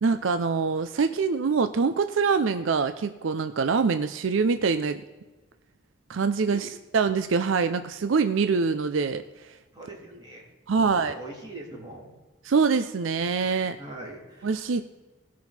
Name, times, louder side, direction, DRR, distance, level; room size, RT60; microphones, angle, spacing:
voice 1, 0.0-5.0 6.1-9.5 10.7-11.1 12.4-13.8 14.4-14.8, right 5 dB, 75° right, 10 dB, 0.5 m, -24 dB
voice 2, 6.4-6.8 9.7-10.5 10.8-12.1 13.8-14.6, right 2 dB, 20° right, -4 dB, 3.2 m, -42 dB
18.5 x 6.2 x 4.3 m, 1.2 s
head